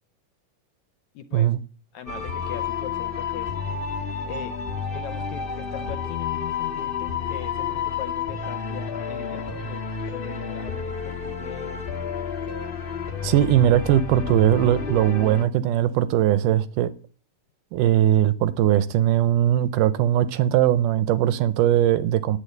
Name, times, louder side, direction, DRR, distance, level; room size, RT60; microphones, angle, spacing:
voice 1, 1.1-1.5 1.9-3.5 4.3-4.6 4.9-11.8, left 10 dB, 70° left, 1.9 m, -39 dB
sound 1, 2.1-15.4, left 6 dB, 45° left, 0.7 m, -30 dB
voice 2, 13.2-16.9 17.7-22.4, right 12 dB, 80° right, 2.2 m, -20 dB
10.0 x 9.0 x 7.9 m
omnidirectional pair, 3.9 m